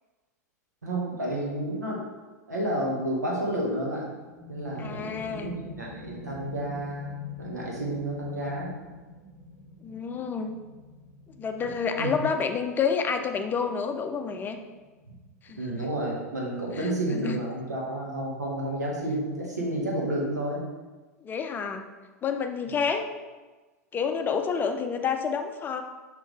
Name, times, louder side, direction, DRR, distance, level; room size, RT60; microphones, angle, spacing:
voice 1, 0.8-2.0 2.5-4.1 4.5-8.7 11.6-12.2 15.1-15.2 15.6-20.6, right 1 dB, 80° right, -3 dB, 1.6 m, -31 dB
sound 1, 4.1-15.4, left 2 dB, 35° right, 1.8 m, -47 dB
voice 2, 4.8-5.6 9.8-10.6 11.4-14.6 15.4-15.8 16.8-17.4 21.2-21.8 22.2-23.0 23.9-25.8, left 6 dB, 20° left, 6 dB, 0.6 m, -29 dB
6.3 x 5.6 x 3.3 m, 1.3 s
figure-of-eight pair, 90°, 9 cm